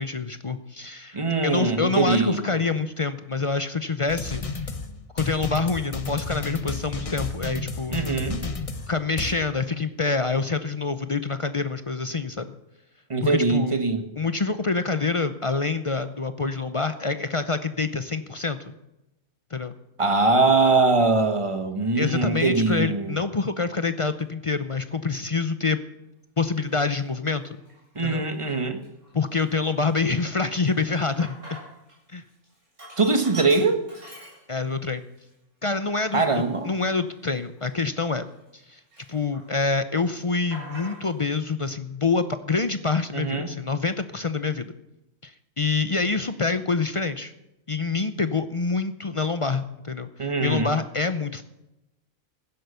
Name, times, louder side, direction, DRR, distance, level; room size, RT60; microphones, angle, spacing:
voice 1, 0.0-1.2 1.4-4.4 5.1-8.0 8.9-12.5 13.2-13.8 14.2-18.7 19.5-19.7 21.9-25.8 26.4-27.6 28.0-28.2 29.1-31.4 32.1-32.2 34.5-35.1 35.6-36.2 36.7-38.3 38.7-38.8 39.1-44.7 45.2-47.3 47.7-51.4, left 4 dB, 50° left, 11 dB, 0.4 m, -26 dB
voice 2, 1.1-2.5 7.9-8.4 13.1-14.0 20.0-23.2 27.9-28.8 33.0-33.8 36.1-36.7 43.1-43.5 50.2-50.7, right 3 dB, 20° right, 7 dB, 1.4 m, -22 dB
sound 1, 4.1-9.3, left 4 dB, 30° left, 0.9 m, -32 dB
Sink (filling or washing), 26.7-26.8 27.5-28.0 28.4-28.5 28.8-32.0 32.3-34.8 35.3-35.4 36.0-38.6 38.9-39.7 39.9-41.3, right 1 dB, 55° right, 8.1 m, -45 dB
15.5 x 10.5 x 6.8 m, 0.93 s
omnidirectional pair, 1.5 m